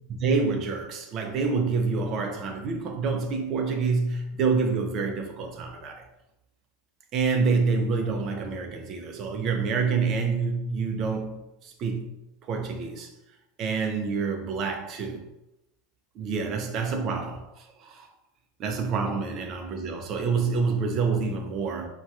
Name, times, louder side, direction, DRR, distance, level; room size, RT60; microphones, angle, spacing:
voice 1, 0.2-6.0 7.1-12.1 12.5-13.1 13.6-15.3 16.2-18.1 18.6-21.9, right 4 dB, 30° right, 0.4 m, -27 dB
4.0 x 2.2 x 2.3 m
supercardioid pair, 175°, 0 cm